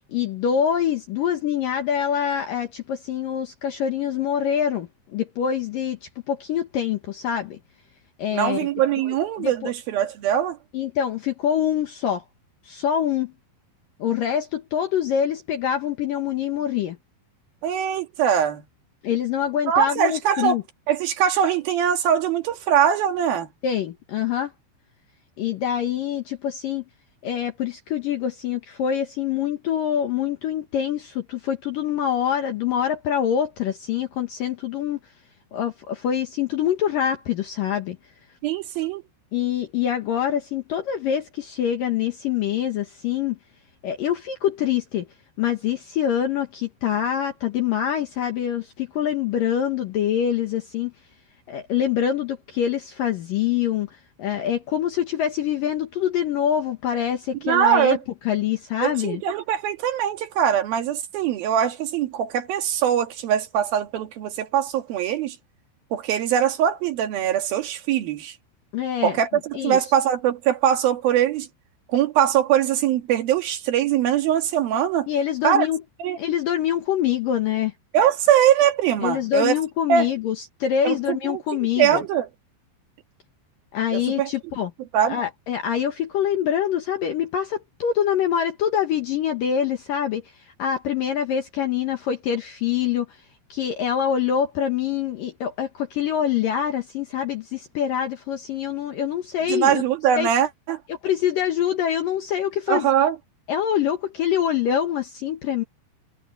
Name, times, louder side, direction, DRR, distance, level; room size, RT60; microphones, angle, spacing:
voice 1, 0.1-7.6 8.2-8.7 9.1-9.7 10.7-12.2 12.7-13.3 14.0-17.0 19.0-20.6 23.6-24.5 25.4-26.8 27.2-35.0 35.5-38.0 39.3-43.4 43.8-45.1 45.4-50.9 51.5-53.9 54.2-58.0 58.2-59.2 68.7-69.8 75.1-75.8 76.2-77.7 79.0-82.0 83.7-84.7 85.1-90.2 90.6-93.2 93.5-99.8 100.2-100.3 100.9-102.9 103.5-105.6, left 9 dB, 65° left, 2.3 m, -25 dB
voice 2, 8.3-10.6 17.6-18.6 19.7-20.6 20.9-23.5 38.4-39.0 57.4-58.0 58.8-65.4 65.9-68.3 69.0-71.5 71.9-75.1 75.4-75.7 76.0-76.2 77.9-79.5 79.9-80.1 80.8-82.3 83.9-84.3 84.9-85.2 99.5-100.8 102.7-103.2, right 9 dB, 60° right, 3.1 m, -22 dB
omnidirectional pair, 5.6 m